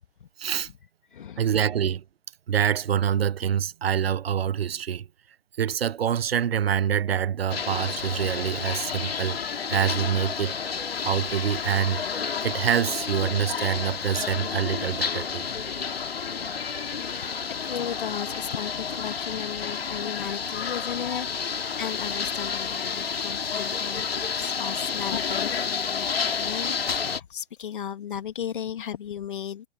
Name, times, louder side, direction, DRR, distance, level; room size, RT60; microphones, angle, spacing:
voice 1, 0.4-0.7 1.4-2.0 2.5-5.1 5.6-10.5 11.0-15.5, right 9 dB, 75° right, 0.6 m, -26 dB
voice 2, 1.1-1.5 15.9-16.7 17.1-24.1 24.3-29.7, left 9 dB, 55° left, 2.5 m, -36 dB
sound 1, 7.5-27.2, left 6 dB, 75° left, 2.3 m, -30 dB
hypercardioid pair, 145°, 30 cm